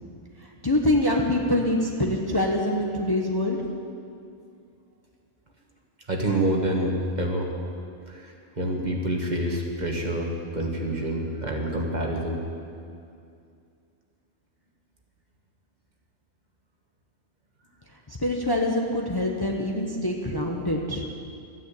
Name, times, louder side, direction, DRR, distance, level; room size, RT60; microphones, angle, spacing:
voice 1, 0.4-3.6 18.1-21.0, left 1 dB, 20° left, 0 dB, 1.0 m, -25 dB
voice 2, 6.1-7.5 8.1-12.4, right 1 dB, 40° right, 0 dB, 1.8 m, -27 dB
13.5 x 9.6 x 8.4 m, 2.4 s
omnidirectional pair, 1.2 m